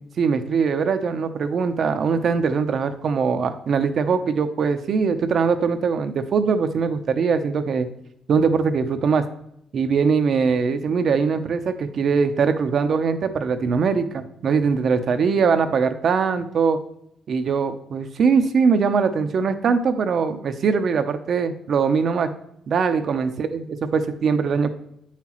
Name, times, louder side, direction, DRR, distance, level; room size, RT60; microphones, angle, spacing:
voice 1, 0.2-7.9 8.3-9.3 9.7-16.8 17.3-22.3 22.7-24.7, right 5 dB, 55° right, 9 dB, 0.7 m, -21 dB
8.1 x 5.8 x 3.0 m, 0.74 s
cardioid pair, 90°, 0 cm